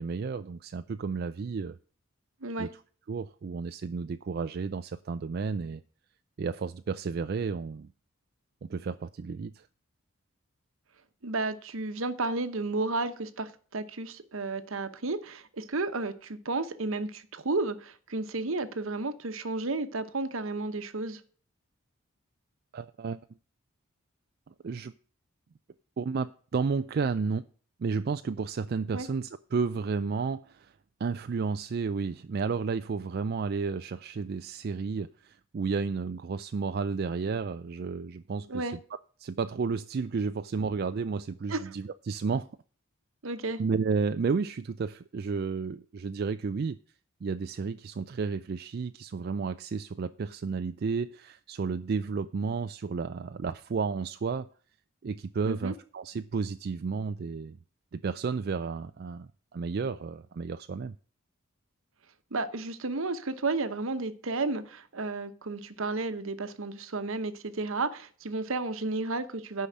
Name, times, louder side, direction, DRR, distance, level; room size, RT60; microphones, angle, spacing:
voice 1, 0.0-1.8 2.6-2.7 3.1-5.8 6.4-7.9 8.6-9.7 22.7-23.2 24.6-24.9 26.0-27.4 27.8-30.7 31.0-38.7 39.2-42.5 43.6-46.8 47.2-54.5 55.0-57.6 57.9-60.9, right 5 dB, 45° right, 0.4 m, -32 dB
voice 2, 11.2-21.2 28.9-29.1 38.5-38.7 41.5-41.7 43.2-43.6 55.5-55.7 62.3-69.7, right 3 dB, 65° right, 1.0 m, -32 dB
10.0 x 5.6 x 7.4 m
head